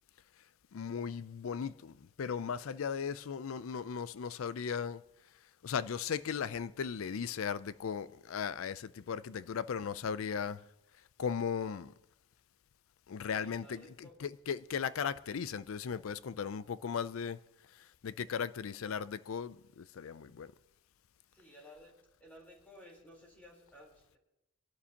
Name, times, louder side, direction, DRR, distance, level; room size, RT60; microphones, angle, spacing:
voice 1, 0.7-5.0 5.6-10.6 11.2-11.9 13.1-17.4 17.7-20.5, left 7 dB, 70° left, 0.4 m, -37 dB
voice 2, 13.3-14.1 21.3-21.9 22.2-24.2, left 1 dB, 5° left, 3.8 m, -56 dB
25.0 x 11.5 x 2.9 m
head